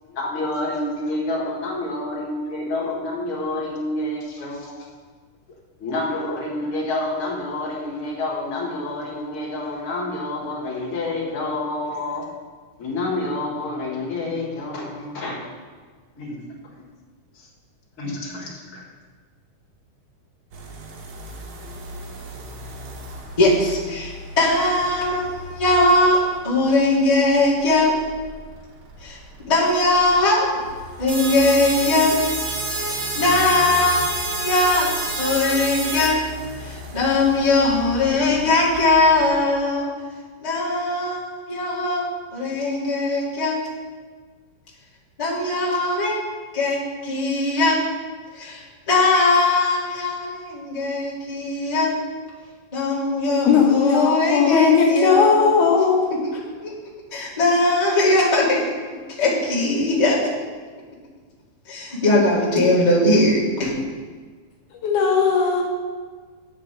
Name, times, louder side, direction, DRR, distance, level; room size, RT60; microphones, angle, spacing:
voice 1, 0.0-4.9 5.8-12.3 12.8-15.5 16.2-16.4 17.3-17.5 18.0-18.9, left 2 dB, 50° left, -3 dB, 2.1 m, -28 dB
sound 1, 20.5-39.4, equal, 80° right, 1.1 m, -39 dB
voice 2, 23.4-26.2 26.4-27.9 29.0-29.2 29.5-30.6 31.0-32.2 32.8-34.9 35.2-36.2 36.6-39.9 40.4-43.6 45.2-46.2 46.5-47.8 48.3-52.0 52.7-55.6 56.6-56.7 57.1-58.6 59.1-60.2 61.6-63.7, left 2 dB, 15° left, -7 dB, 1.6 m, -20 dB
sound 2, 31.1-36.1, right 2 dB, 55° right, 2.0 m, -28 dB
voice 3, 53.5-56.0 64.7-65.6, left 6 dB, 75° left, 0 dB, 2.3 m, -17 dB
8.7 x 4.9 x 6.6 m, 1.5 s
omnidirectional pair, 3.7 m